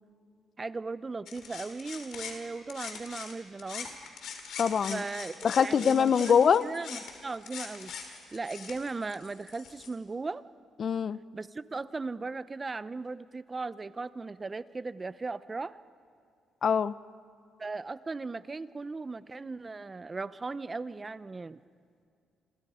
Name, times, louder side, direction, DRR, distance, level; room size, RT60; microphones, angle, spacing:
voice 1, 0.6-3.9 4.9-7.9 8.3-10.4 11.3-15.8 17.6-21.6, right 3 dB, 25° right, 15 dB, 0.7 m, -37 dB
sound 1, 1.3-3.3 3.6-9.9, left 6 dB, 75° left, 3.4 m, -42 dB
voice 2, 4.6-5.0 5.4-6.7 10.8-11.2 16.6-16.9, left 7 dB, 50° left, 16 dB, 0.6 m, -23 dB
28.0 x 28.0 x 5.0 m, 2.3 s
cardioid pair, 90°, 0 cm